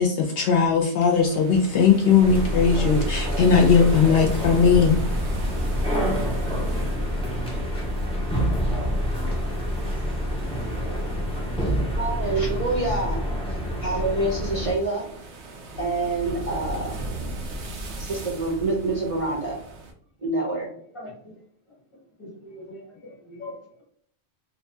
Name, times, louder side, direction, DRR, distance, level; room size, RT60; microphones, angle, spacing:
voice 1, 0.0-5.0, left 6 dB, 65° left, 1 dB, 0.7 m, -19 dB
sound 1, 1.1-19.9, right 1 dB, 80° right, 0.9 m, -38 dB
sound 2, 2.2-14.7, equal, 10° left, 0.4 m, -27 dB
voice 2, 12.0-13.2 13.8-15.1 15.8-16.9 18.0-19.6 20.2-20.7, right 2 dB, 35° right, -4 dB, 0.6 m, -26 dB
voice 3, 20.9-21.4 22.2-23.8, left 1 dB, 30° left, -3 dB, 0.9 m, -42 dB
2.6 x 2.2 x 2.7 m, 0.62 s
omnidirectional pair, 1.2 m